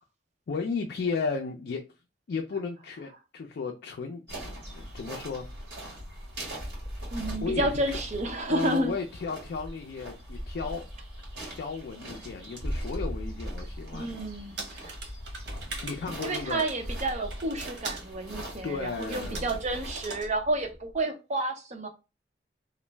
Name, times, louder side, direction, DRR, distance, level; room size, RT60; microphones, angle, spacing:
voice 1, 0.5-1.8 2.3-5.5 6.5-6.7 7.4-8.0 8.5-10.9 11.5-14.7 15.8-16.6 18.6-19.5, left 4 dB, 65° left, 0.4 m, -34 dB
sound 1, 4.3-20.1, equal, 70° right, 1.4 m, -42 dB
sound 2, 6.5-21.0, equal, 20° left, 1.0 m, -41 dB
voice 2, 7.1-8.9 13.9-14.9 16.2-21.9, right 1 dB, 40° right, 0.6 m, -30 dB
sound 3, 14.6-18.1 19.0-19.6 20.0-20.3, right 4 dB, 85° right, 0.9 m, -41 dB
2.5 x 2.0 x 3.2 m
head